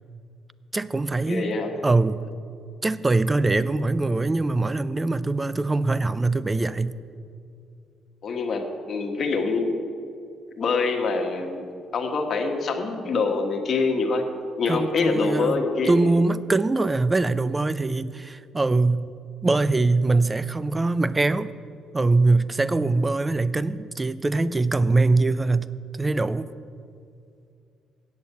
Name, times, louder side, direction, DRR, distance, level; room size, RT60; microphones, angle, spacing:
voice 1, 0.7-1.6 1.8-2.2 2.8-7.0 14.7-19.1 19.4-21.5 21.9-25.7 26.0-26.5, right 3 dB, 20° right, 16 dB, 0.4 m, -22 dB
voice 2, 1.3-1.8 8.2-9.7 10.6-11.6 11.9-14.2 14.6-15.9, left 4 dB, 45° left, 4 dB, 1.3 m, -25 dB
8.7 x 6.9 x 8.2 m, 2.5 s
cardioid pair, 110°, 0 cm